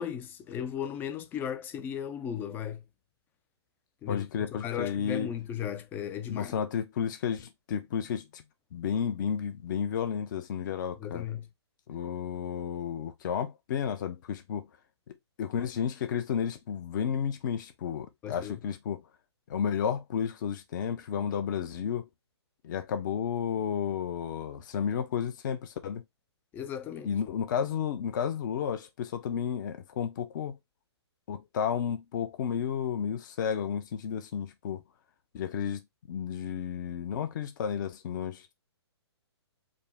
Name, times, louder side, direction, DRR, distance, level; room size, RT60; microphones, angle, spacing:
voice 1, 0.0-2.8 4.0-6.5 11.0-11.5 18.2-18.5 26.5-27.1, left 9 dB, 15° left, 0.4 m, -36 dB
voice 2, 4.1-5.3 6.3-8.4 8.7-11.3 11.9-14.7 15.4-19.0 19.5-22.0 22.6-26.0 27.0-30.5 31.3-34.8 35.3-35.8 36.1-38.5, left 8 dB, 45° left, 0.7 m, -32 dB
5.1 x 2.1 x 3.4 m
hypercardioid pair, 140°, 14 cm